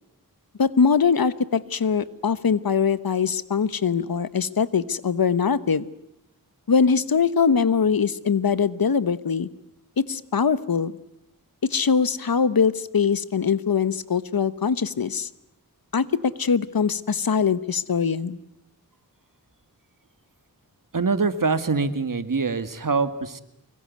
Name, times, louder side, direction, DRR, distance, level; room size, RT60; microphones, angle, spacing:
voice 1, 0.6-5.9 6.7-9.5 10.0-10.9 11.6-15.3 15.9-18.4, left 6 dB, 75° left, 16 dB, 1.1 m, -22 dB
voice 2, 20.9-23.4, right 4 dB, 65° right, 11 dB, 2.0 m, -24 dB
25.0 x 22.0 x 9.5 m, 0.79 s
wide cardioid pair, 55°, 36 cm